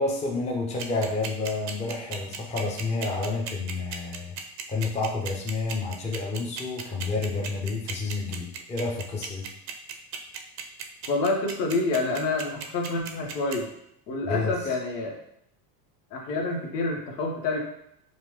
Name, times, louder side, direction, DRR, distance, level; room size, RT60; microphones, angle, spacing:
voice 1, 0.0-4.4 4.7-9.5 14.2-14.6, left 3 dB, 15° left, 0 dB, 0.6 m, -29 dB
sound 1, 0.8-13.6, right 7 dB, 35° right, 0.5 m, -35 dB
voice 2, 11.1-13.7 14.1-15.2 16.1-17.6, left 3 dB, 85° left, 0 dB, 1.3 m, -28 dB
5.5 x 2.2 x 3.2 m, 0.74 s
supercardioid pair, 110°, 48 cm